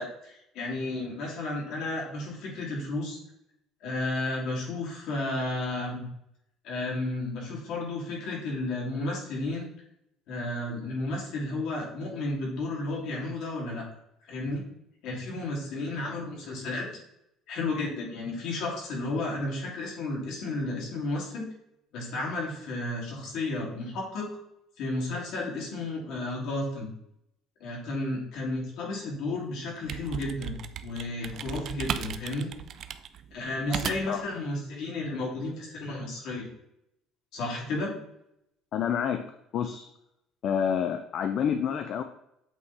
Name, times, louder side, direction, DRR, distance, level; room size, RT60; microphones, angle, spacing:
voice 1, 0.0-3.2 3.8-6.0 6.6-9.7 10.3-13.8 14.2-14.6 15.0-16.9 17.5-21.5 21.9-24.3 24.8-26.9 27.6-32.5 33.3-36.5 37.3-37.9, left 2 dB, 60° left, -2 dB, 2.8 m, -32 dB
sound 1, 29.6-34.3, right 9 dB, 45° right, 0.4 m, -36 dB
voice 2, 33.7-34.2 38.7-39.3 39.5-39.9 40.4-42.0, left 8 dB, 45° left, 8 dB, 0.5 m, -28 dB
8.1 x 3.7 x 4.1 m, 0.81 s
cardioid pair, 165°, 0 cm